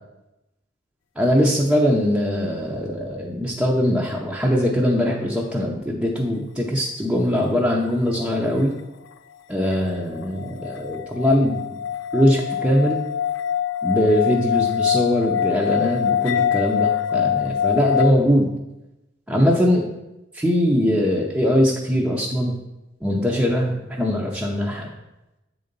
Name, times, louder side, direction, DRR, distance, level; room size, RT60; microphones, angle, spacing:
voice 1, 1.2-8.7 9.5-11.6 12.1-13.0 13.8-18.5 19.3-19.9 20.3-22.5 23.0-24.9, equal, 5° right, -3 dB, 0.7 m, -21 dB
sound 1, 9.7-18.1, left 9 dB, 85° left, 0.4 m, -24 dB
7.6 x 3.9 x 5.2 m, 0.96 s
head